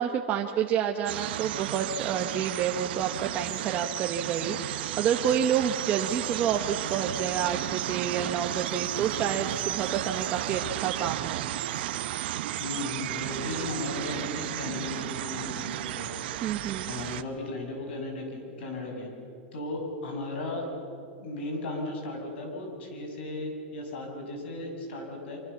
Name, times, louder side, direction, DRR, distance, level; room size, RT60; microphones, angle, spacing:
voice 1, 0.0-11.5 16.4-16.9, right 8 dB, 25° right, 3 dB, 1.0 m, -29 dB
sound 1, 1.1-17.2, right 14 dB, 60° right, 1.0 m, -33 dB
voice 2, 12.6-16.1 16.9-19.1 19.5-20.7 21.2-25.4, left 2 dB, 70° left, 2 dB, 7.5 m, -36 dB
25.0 x 24.5 x 7.2 m, 2.6 s
supercardioid pair, 165°, 6 cm